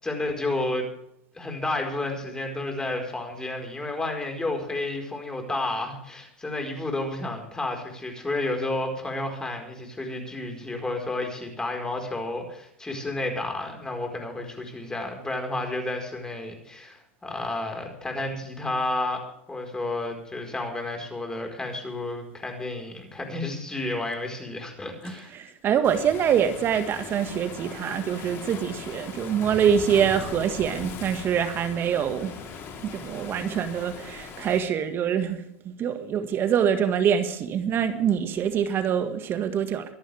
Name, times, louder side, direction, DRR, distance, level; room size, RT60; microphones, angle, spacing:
voice 1, 0.0-0.9 1.3-25.3, left 2 dB, 10° left, 3 dB, 4.7 m, -31 dB
voice 2, 25.3-32.3 32.8-39.8, right 8 dB, 35° right, 9 dB, 1.8 m, -25 dB
Waves surf, 25.8-34.6, left 5 dB, 40° left, 3.7 m, -39 dB
24.5 x 11.5 x 3.5 m, 0.73 s
hypercardioid pair, 105°, 6 cm